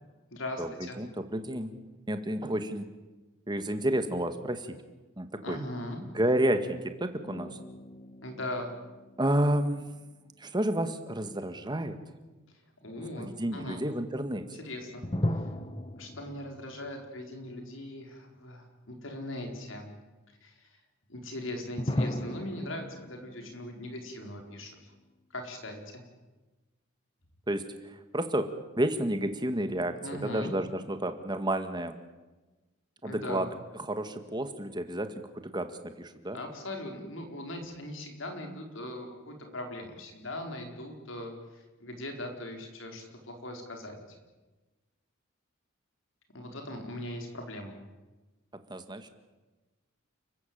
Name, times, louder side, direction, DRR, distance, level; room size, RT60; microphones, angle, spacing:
voice 1, 0.3-1.0 5.4-6.0 8.2-8.7 12.8-13.8 14.5-15.0 15.3-15.4 16.0-19.9 20.4-20.7 21.1-24.8 25.3-26.0 30.0-30.5 33.0-33.4 36.3-44.0 46.3-47.8, left 1 dB, 70° left, 3 dB, 4.8 m, -40 dB
voice 2, 1.0-1.7 2.1-2.8 3.5-4.8 5.2-5.6 6.1-7.6 9.2-9.9 10.4-12.0 13.0-14.5 27.5-28.5 28.8-30.0 30.2-32.0 33.0-33.5 33.7-35.1 35.4-36.4 48.7-49.1, right 1 dB, 20° right, 8 dB, 1.8 m, -30 dB
sound 1, 7.2-10.5 15.0-18.1 18.4-18.5 21.8-25.1, left 1 dB, 25° left, 1.3 m, -37 dB
30.0 x 14.5 x 8.9 m, 1.2 s
head